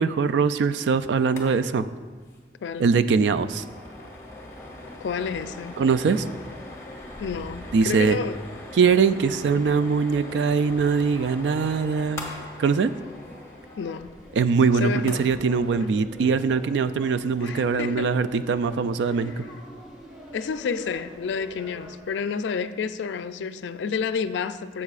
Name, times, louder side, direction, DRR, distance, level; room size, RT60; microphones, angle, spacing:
voice 1, 0.0-1.9 2.8-3.6 5.8-6.2 7.7-8.2 8.8-12.3 12.6-12.9 14.4-19.4, right 5 dB, 75° right, 0.3 m, -22 dB
sound 1, 1.2-1.5 1.8-1.9 2.2-2.4 2.7-15.4, left 1 dB, 15° left, 1.2 m, -42 dB
sound 2, 3.5-22.0, left 1 dB, 5° right, 1.4 m, -47 dB
voice 2, 5.0-5.8 7.2-8.4 13.8-14.1 14.7-15.3 17.4-18.2 19.2-19.5 20.3-24.8, left 5 dB, 85° left, 0.3 m, -30 dB
13.0 x 7.3 x 2.4 m
head